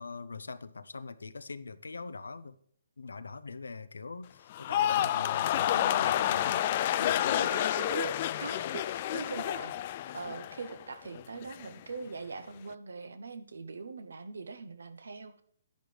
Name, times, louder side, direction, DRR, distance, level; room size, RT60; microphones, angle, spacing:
voice 1, 0.0-2.6 3.0-7.5, left 4 dB, 90° left, 14 dB, 0.6 m, -42 dB
sound 1, 4.5-10.8 11.1-11.7, left 12 dB, 40° left, 0.3 m, -29 dB
voice 2, 5.6-5.9 7.3-9.7 10.1-15.4, right 4 dB, 80° right, 10 dB, 0.9 m, -41 dB
10.5 x 9.5 x 3.4 m, 0.66 s
hypercardioid pair, 150°, 0 cm